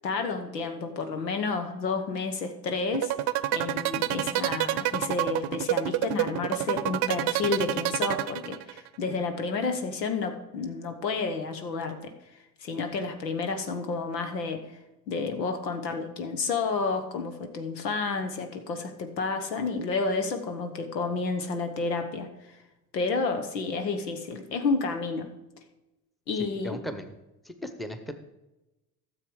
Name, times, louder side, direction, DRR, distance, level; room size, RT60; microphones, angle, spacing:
voice 1, 0.0-3.1 3.5-12.1 12.6-14.6 15.1-22.3 22.9-25.3 26.3-26.8, left 4 dB, 85° left, 6 dB, 1.2 m, -30 dB
sound 1, 2.9-8.9, right 15 dB, 50° right, 0.7 m, -27 dB
voice 2, 26.4-27.2 27.4-28.1, equal, ahead, 7 dB, 0.9 m, -37 dB
13.0 x 6.8 x 4.7 m, 1.0 s
hypercardioid pair, 70°, 48 cm